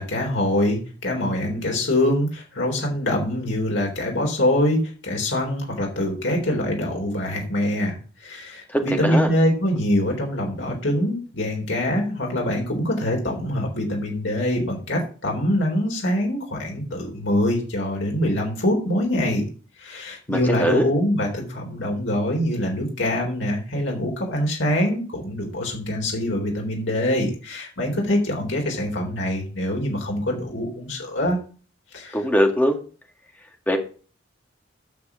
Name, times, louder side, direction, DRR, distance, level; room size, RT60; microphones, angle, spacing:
voice 1, 0.0-19.4 19.8-31.4 31.9-32.2, left 1 dB, 75° left, 0 dB, 3.5 m, -24 dB
voice 2, 8.7-9.3 20.3-20.9 32.1-32.8 33.7-33.8, equal, 10° left, 3 dB, 1.9 m, -21 dB
9.3 x 6.7 x 6.8 m, 0.39 s
head